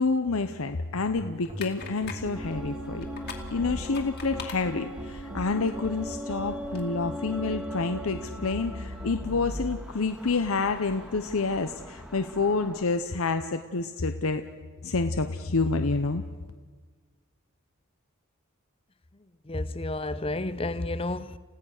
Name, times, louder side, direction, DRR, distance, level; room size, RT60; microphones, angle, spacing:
voice 1, 0.0-3.1 3.5-14.4 14.8-16.2, left 3 dB, 75° left, 0.8 m, -28 dB
sound 1, 0.9-9.8, equal, 25° right, 2.1 m, -39 dB
sound 2, 1.4-6.8, left 6 dB, 45° left, 2.4 m, -45 dB
sound 3, 2.3-12.9, equal, 5° right, 2.0 m, -41 dB
voice 2, 19.5-21.4, left 2 dB, 25° left, 0.6 m, -31 dB
29.0 x 16.5 x 6.6 m
head